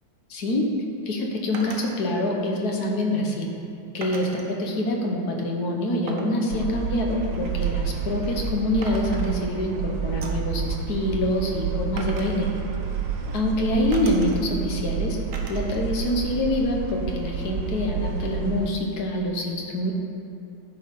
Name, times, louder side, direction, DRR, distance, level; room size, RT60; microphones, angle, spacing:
voice 1, 0.3-0.7 1.0-3.5 3.9-12.5 13.3-15.2 15.5-19.9, left 1 dB, 60° left, 0 dB, 1.3 m, -26 dB
sound 1, 1.5-2.0 4.0-4.6 6.1-8.6 8.8-9.8 10.2-10.5 12.0-13.5 13.9-14.7 15.3-15.9 16.2-17.0, right 3 dB, 60° right, 0.9 m, -41 dB
sound 2, 6.5-18.7, right 6 dB, 75° right, 1.3 m, -29 dB
11.0 x 4.8 x 5.2 m, 2.6 s
omnidirectional pair, 2.2 m